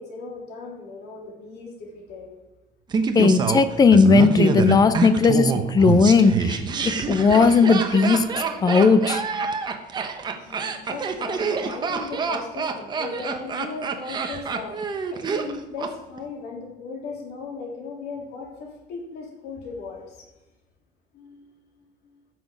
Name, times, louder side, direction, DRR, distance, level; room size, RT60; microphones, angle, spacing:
voice 1, 0.0-2.4 10.3-20.3 21.1-21.5 21.7-22.2, left 4 dB, 60° left, -1 dB, 3.3 m, -37 dB
Laughter, 2.9-15.9 16.2-16.3, right 5 dB, 25° right, 0.8 m, -26 dB
voice 2, 3.1-6.6 6.8-8.2 8.6-9.2, left 4 dB, 20° left, 12 dB, 0.6 m, -17 dB
14.5 x 6.2 x 5.3 m, 1.1 s
cardioid pair, 180°, 19 cm